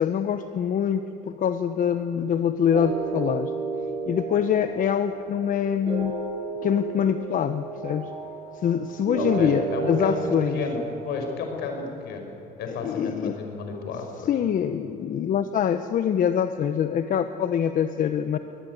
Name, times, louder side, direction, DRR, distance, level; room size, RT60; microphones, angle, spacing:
voice 1, 0.0-3.5 4.1-6.1 6.6-8.1 8.5-10.6 12.7-13.4 14.3-18.4, left 8 dB, 55° left, 9 dB, 1.0 m, -24 dB
sound 1, 2.7-11.9, right 5 dB, 35° right, 7.8 m, -32 dB
voice 2, 9.2-12.3 12.6-14.3, left 4 dB, 75° left, 4 dB, 5.3 m, -32 dB
22.5 x 20.5 x 9.5 m, 2.9 s
cardioid pair, 110°, 17 cm